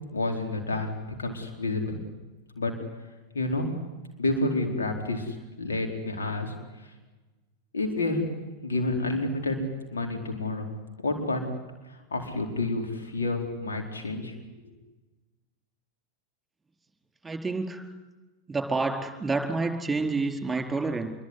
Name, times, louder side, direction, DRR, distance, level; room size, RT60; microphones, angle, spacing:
voice 1, 0.1-0.9 1.2-2.0 2.5-2.7 3.3-3.7 4.2-6.9 7.7-9.6 9.9-10.7 11.0-11.4 11.9-14.7, left 2 dB, 70° left, 3 dB, 4.6 m, -29 dB
voice 2, 17.2-17.8 18.5-21.1, right 3 dB, 10° right, 5 dB, 4.5 m, -28 dB
26.5 x 22.5 x 9.8 m, 1.2 s
figure-of-eight pair, 90°, 0 cm